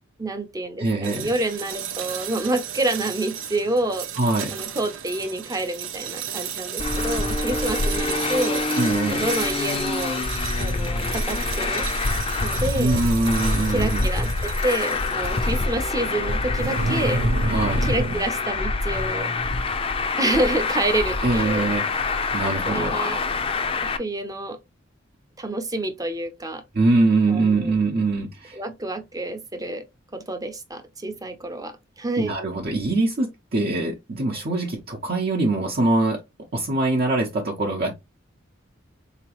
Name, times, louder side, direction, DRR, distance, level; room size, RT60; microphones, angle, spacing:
voice 1, 0.2-4.1 4.5-8.8 9.1-10.2 10.6-11.9 12.4-13.0 13.7-17.2 17.8-19.3 20.2-21.7 22.7-23.2 23.8-24.6 25.4-26.6 27.3-27.7 28.5-29.8 30.1-32.3, right 1 dB, 20° right, 0.6 m, -28 dB
voice 2, 0.8-1.3 4.2-4.5 8.8-9.3 12.8-14.1 17.5-17.9 21.2-23.0 26.7-28.6 32.2-36.2 36.5-37.9, right 2 dB, 50° right, 0.8 m, -23 dB
sound 1, 1.0-15.8 16.6-18.2, right 6 dB, 90° right, 0.6 m, -32 dB
Traffic noise roadway noise, 6.8-24.0, left 3 dB, 30° left, 0.4 m, -25 dB
4.0 x 2.9 x 2.9 m
head